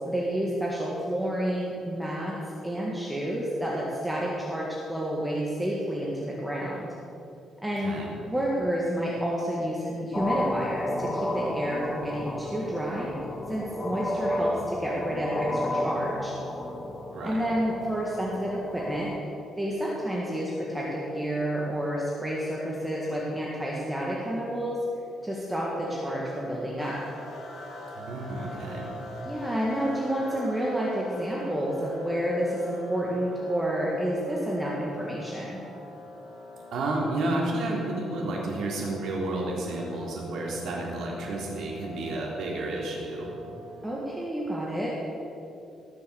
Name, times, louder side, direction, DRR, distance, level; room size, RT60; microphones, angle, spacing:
voice 1, 0.0-2.4 2.6-6.9 7.6-7.9 8.2-13.1 13.5-16.3 17.2-19.1 19.6-24.8 25.2-27.0 29.2-35.6 43.8-45.0, equal, 5° right, -4 dB, 1.7 m, -30 dB
voice 2, 7.8-8.1 17.1-17.4 27.9-28.9 36.7-43.3, right 2 dB, 65° right, -2 dB, 3.6 m, -31 dB
sound 1, 10.1-19.2, left 1 dB, 20° left, 1.3 m, -32 dB
sound 2, 26.8-44.6, left 1 dB, 65° left, 3.0 m, -44 dB
18.0 x 6.9 x 7.1 m, 2.9 s
cardioid pair, 140°, 0 cm